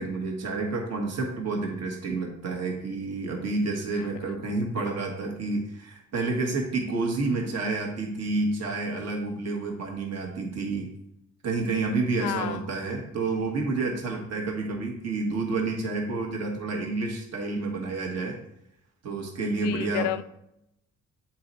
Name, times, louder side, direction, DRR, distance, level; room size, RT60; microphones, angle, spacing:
voice 1, 0.0-10.9 11.4-18.4 19.0-20.1, right 3 dB, 55° right, 1 dB, 1.5 m, -29 dB
voice 2, 3.9-4.3 4.8-4.9 12.2-12.7 19.4-20.2, left 13 dB, 90° left, 12 dB, 0.5 m, -32 dB
7.7 x 4.3 x 4.0 m, 0.80 s
cardioid pair, 90°, 30 cm